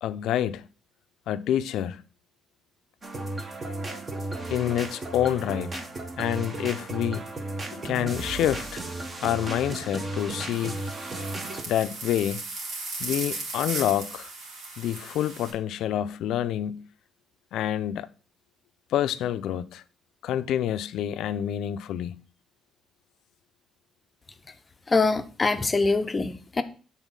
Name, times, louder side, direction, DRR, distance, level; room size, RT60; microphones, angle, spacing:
voice 1, 0.0-0.6 1.3-2.0 4.5-5.8 6.2-7.3 7.7-8.8 9.2-10.8 11.7-12.4 13.0-14.3 14.8-16.8 17.5-18.1 18.9-19.8 20.2-22.2, left 11 dB, 80° left, 0.4 m, -27 dB
sound 1, 3.0-11.6, right 2 dB, 25° right, 0.9 m, -34 dB
sound 2, 10.5-15.5, right 3 dB, 85° right, 2.4 m, -36 dB
voice 2, 24.9-26.6, left 3 dB, 20° left, 0.6 m, -24 dB
8.1 x 4.0 x 5.4 m
cardioid pair, 175°, 0 cm